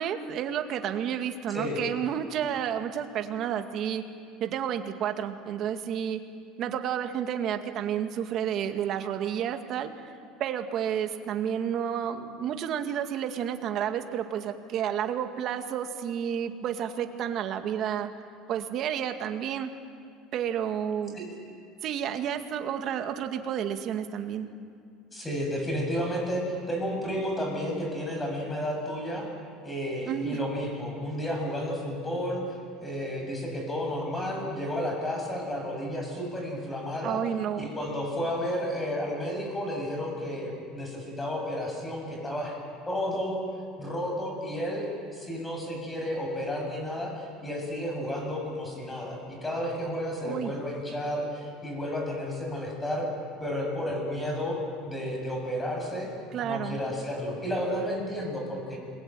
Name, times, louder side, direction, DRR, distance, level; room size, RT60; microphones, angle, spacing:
voice 1, 0.0-4.0 4.4-6.2 6.6-9.9 10.4-18.1 18.5-19.7 20.3-21.2 21.8-24.5 30.1-30.5 37.0-37.7 50.2-50.5 56.3-56.8, right 9 dB, 45° right, 6 dB, 2.1 m, -31 dB
voice 2, 25.1-29.3 29.6-32.4 32.8-37.2 37.6-42.5 42.9-43.4 43.8-44.9 45.1-53.1 53.4-56.1 56.4-58.8, equal, 10° left, 1 dB, 7.6 m, -32 dB
29.5 x 21.5 x 9.3 m, 2.3 s
cardioid pair, 140°, 0 cm